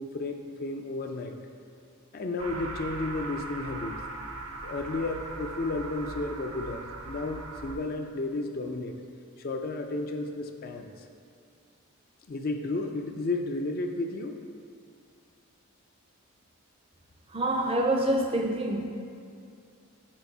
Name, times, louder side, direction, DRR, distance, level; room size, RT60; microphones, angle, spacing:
voice 1, 0.0-1.4 2.1-4.0 4.6-9.0 9.4-10.9 12.3-14.4, left 2 dB, 40° left, 4 dB, 0.4 m, -33 dB
sound 1, 2.4-7.7, right 2 dB, 80° right, 0.6 m, -39 dB
voice 2, 17.3-18.9, right 1 dB, 25° right, 3 dB, 0.5 m, -26 dB
6.0 x 4.6 x 5.3 m, 2.4 s
head